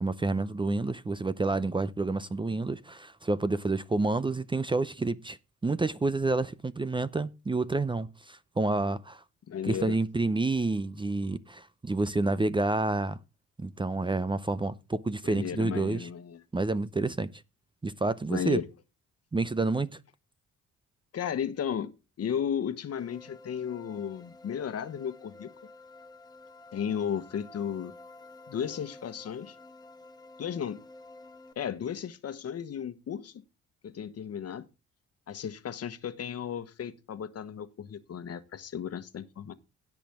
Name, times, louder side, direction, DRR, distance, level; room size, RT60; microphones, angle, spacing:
voice 1, 0.0-5.4 5.6-9.2 9.6-13.2 13.6-16.1 16.5-17.3 17.8-18.6 19.3-19.9, right 3 dB, 15° right, 0.6 m, -29 dB
voice 2, 9.5-10.0 15.2-16.4 18.3-18.7 21.1-21.9 22.2-25.5 26.7-27.9 28.5-29.6 30.4-30.8 31.6-33.4 33.8-34.7 35.3-39.5, left 8 dB, 55° left, 1.3 m, -34 dB
sound 1, 23.0-31.5, left 2 dB, 15° left, 1.2 m, -51 dB
17.0 x 6.1 x 3.6 m
cardioid pair, 90°, 30 cm